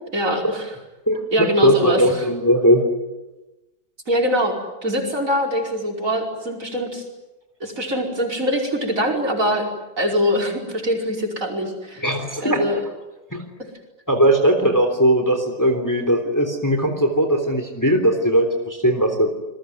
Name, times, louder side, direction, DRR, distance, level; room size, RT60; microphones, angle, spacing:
voice 1, 0.1-0.7 1.3-2.2 4.1-4.5 4.8-7.0 7.6-9.7 10.0-12.0 12.4-12.8, equal, 45° right, 1 dB, 5.5 m, -23 dB
voice 2, 1.1-2.8 12.0-12.8 13.3-13.4 14.1-19.3, equal, 10° left, 5 dB, 3.3 m, -19 dB
28.5 x 21.5 x 9.6 m, 1.0 s
omnidirectional pair, 1.9 m